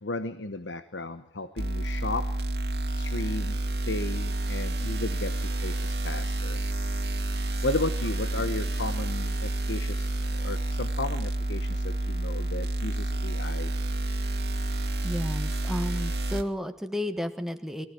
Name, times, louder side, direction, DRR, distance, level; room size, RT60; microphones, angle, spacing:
voice 1, 0.0-2.3 2.9-6.6 7.6-13.7, left 2 dB, 80° left, 11 dB, 1.1 m, -34 dB
sound 1, 1.6-16.4, right 1 dB, 60° right, 2.1 m, -29 dB
voice 2, 15.0-17.9, equal, ahead, 7 dB, 1.4 m, -32 dB
23.5 x 15.5 x 8.3 m, 0.77 s
head